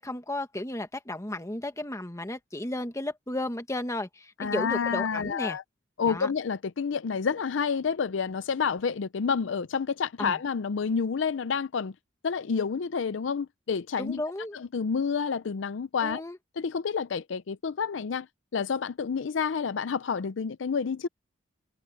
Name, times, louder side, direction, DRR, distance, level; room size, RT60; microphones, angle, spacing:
voice 1, 0.0-5.6 6.0-6.3 10.2-10.4 14.0-14.6 16.0-16.4, left 1 dB, 15° left, 1.5 m, -34 dB
voice 2, 4.4-5.6 6.0-11.9 12.2-14.2 14.5-16.2 16.6-18.3 18.5-21.1, left 6 dB, 70° left, 0.5 m, -29 dB
head